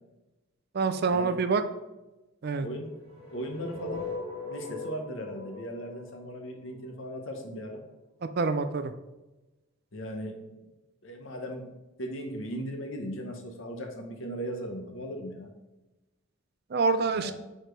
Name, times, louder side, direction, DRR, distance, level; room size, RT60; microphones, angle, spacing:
voice 1, 0.7-1.6 2.4-2.7 8.4-8.9 16.7-17.3, right 4 dB, 45° right, 10 dB, 0.4 m, -26 dB
voice 2, 2.6-2.9 3.3-4.1 4.4-7.8 9.9-10.4 11.0-11.7 12.0-15.5 17.1-17.3, equal, 65° left, 4 dB, 1.0 m, -37 dB
sound 1, 2.9-7.0, left 3 dB, 25° left, 1.8 m, -40 dB
5.0 x 4.4 x 4.5 m, 1.0 s
head